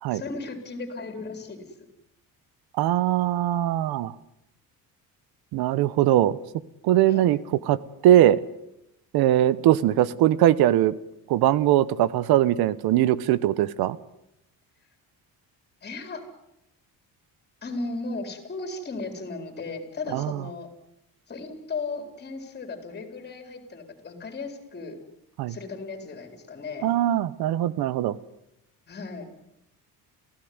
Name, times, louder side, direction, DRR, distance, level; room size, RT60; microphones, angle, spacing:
voice 1, 0.1-1.6 7.1-7.4 15.8-16.2 17.6-20.7 21.3-25.0 25.5-26.9 28.9-29.3, left 3 dB, 30° left, 7 dB, 4.2 m, -36 dB
voice 2, 2.8-4.1 5.5-6.4 6.8-7.4 7.7-7.8 8.0-8.4 9.1-10.9 11.3-14.0 20.1-20.4 25.4-25.5 26.8-28.2, right 13 dB, 85° right, 19 dB, 1.1 m, -21 dB
29.5 x 16.0 x 9.6 m, 0.84 s
cardioid pair, 155°, 36 cm